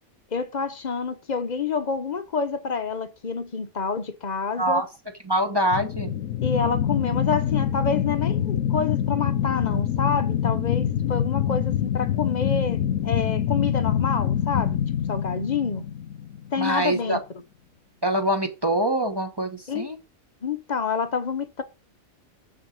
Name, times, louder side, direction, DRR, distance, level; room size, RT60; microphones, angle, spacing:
voice 1, 0.3-4.8 6.4-14.8 15.1-15.8 16.5-17.2 19.7-19.8 20.4-21.6, left 5 dB, 40° left, 0.7 m, -28 dB
voice 2, 5.2-6.2 16.6-17.2 18.0-20.0, right 1 dB, 20° right, 0.9 m, -24 dB
sound 1, 5.7-16.6, left 10 dB, 75° left, 1.1 m, -25 dB
7.0 x 6.4 x 6.3 m
omnidirectional pair, 1.4 m